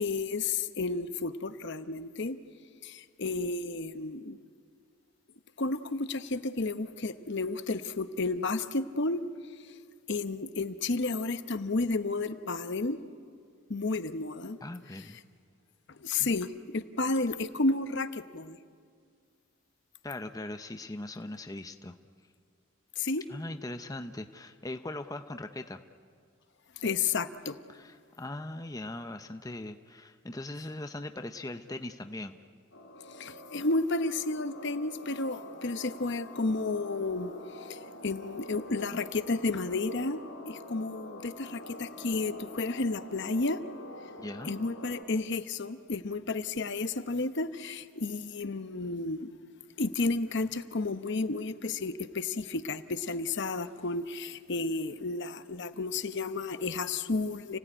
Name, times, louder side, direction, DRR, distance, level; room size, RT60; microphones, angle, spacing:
voice 1, 0.0-2.4 2.8-4.4 5.6-9.2 10.1-13.0 13.7-14.6 15.0-15.1 16.0-16.5 16.7-18.6 23.0-23.2 26.8-27.6 33.2-37.3 37.7-37.8 38.0-40.2 40.5-43.6 44.4-49.3 49.8-57.6, left 3 dB, 50° left, 11 dB, 0.9 m, -32 dB
voice 2, 14.6-15.2 16.2-16.4 20.0-22.0 23.3-25.8 27.7-32.4 44.2-44.5, left 2 dB, 15° left, 7 dB, 0.6 m, -40 dB
sound 1, 32.7-45.0, left 1 dB, 80° left, 3.4 m, -46 dB
29.5 x 17.0 x 10.0 m, 2.2 s
head